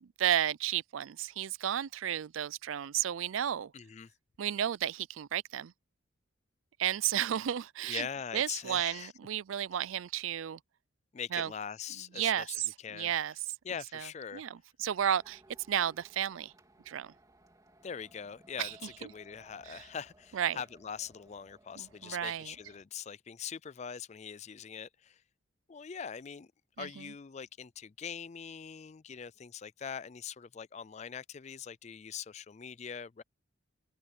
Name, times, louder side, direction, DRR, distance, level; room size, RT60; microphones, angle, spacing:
voice 1, 0.0-3.7 4.4-5.7 6.8-8.1 8.3-10.6 11.3-11.5 12.2-12.5 12.9-13.3 13.9-14.1 14.3-14.5 14.8-15.4 15.7-16.5 16.9-17.1 18.6-18.7 20.3-20.6 21.8-22.5 26.8-26.9, right 10 dB, 80° right, 0.4 m, -32 dB
voice 2, 3.7-4.1 7.8-9.1 11.1-13.1 13.6-14.4 17.8-25.2 25.7-26.5 26.8-33.2, left 7 dB, 35° left, 0.4 m, -42 dB
sound 1, 15.2-22.8, right 1 dB, 20° right, 2.9 m, -62 dB
head